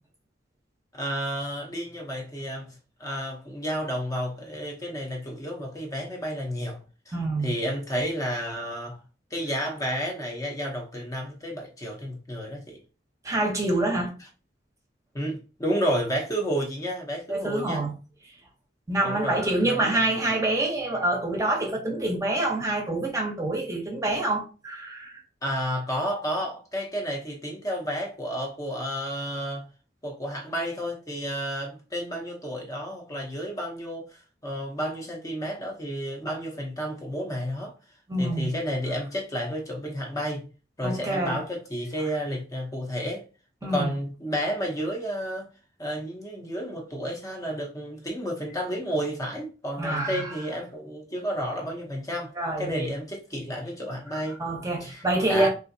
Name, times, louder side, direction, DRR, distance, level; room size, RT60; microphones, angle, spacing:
voice 1, 0.9-6.8 7.1-9.0 9.3-12.8 14.2-14.3 15.1-17.8 19.0-20.4 25.4-29.6 30.0-37.7 38.2-40.5 40.8-43.2 43.6-45.5 45.8-52.3 52.6-54.4 54.8-55.5, equal, 20° left, 0.6 m, -31 dB
voice 2, 7.1-7.5 13.2-14.1 17.3-17.9 18.9-25.2 38.1-38.5 40.8-41.4 43.6-43.9 49.8-50.3 52.4-52.9 54.4-55.5, right 2 dB, 15° right, 0.7 m, -26 dB
3.6 x 2.5 x 2.6 m
head